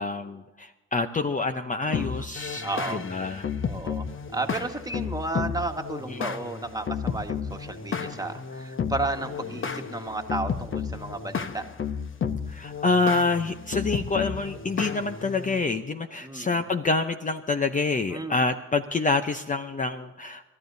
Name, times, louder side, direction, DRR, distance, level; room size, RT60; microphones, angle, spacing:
voice 1, 0.0-3.5 6.1-6.3 12.5-20.4, left 3 dB, 25° left, 7 dB, 0.7 m, -27 dB
sound 1, 1.9-15.6, left 6 dB, 40° left, 1.1 m, -32 dB
voice 2, 1.9-2.3 2.6-3.1 3.7-11.6 16.2-16.6 18.1-18.5, right 2 dB, 10° right, 4 dB, 1.6 m, -33 dB
29.0 x 13.0 x 2.7 m, 1.1 s
cardioid pair, 90°, 30 cm